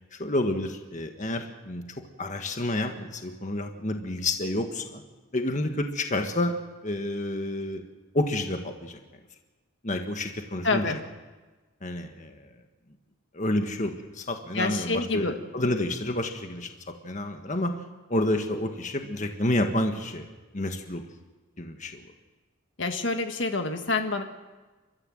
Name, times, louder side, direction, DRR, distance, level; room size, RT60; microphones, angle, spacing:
voice 1, 0.1-1.8 2.2-5.0 5.3-6.6 6.8-7.8 8.1-9.0 9.8-10.9 11.8-12.5 13.3-15.3 15.5-17.7 18.1-20.3 20.5-21.0 21.6-22.0, left 1 dB, 35° left, 5 dB, 1.5 m, -29 dB
voice 2, 10.6-11.0 14.5-15.3 22.8-24.2, left 3 dB, 60° left, 6 dB, 1.6 m, -27 dB
30.0 x 13.5 x 7.8 m, 1.3 s
head